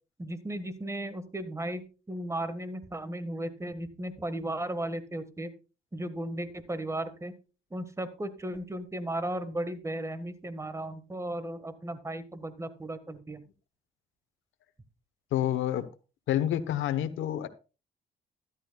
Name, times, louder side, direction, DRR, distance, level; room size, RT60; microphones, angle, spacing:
voice 1, 0.2-5.5 5.9-7.3 7.7-13.4, right 1 dB, 15° right, 12 dB, 1.5 m, -35 dB
voice 2, 15.3-15.9 16.3-17.5, left 11 dB, 80° left, 10 dB, 1.0 m, -28 dB
13.0 x 11.5 x 2.3 m, 0.31 s
cardioid pair, 90°, 20 cm